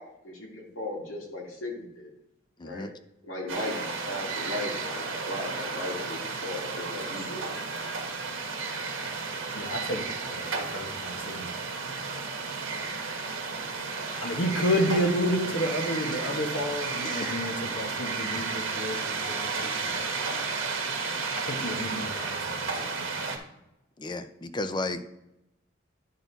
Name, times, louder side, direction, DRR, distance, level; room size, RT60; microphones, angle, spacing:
voice 1, 0.0-2.1 2.6-2.9 3.2-7.5, left 2 dB, 85° left, -1 dB, 2.1 m, -37 dB
voice 2, 2.6-2.9 16.3-16.4 17.0-17.3 24.0-25.0, left 2 dB, 25° left, 11 dB, 0.4 m, -34 dB
sound 1, 3.5-23.4, right 4 dB, 85° right, 1.3 m, -33 dB
voice 3, 9.5-11.5 14.2-20.1 21.3-22.6 23.0-23.1, equal, 60° left, 4 dB, 1.2 m, -31 dB
11.0 x 4.1 x 4.0 m, 0.87 s
head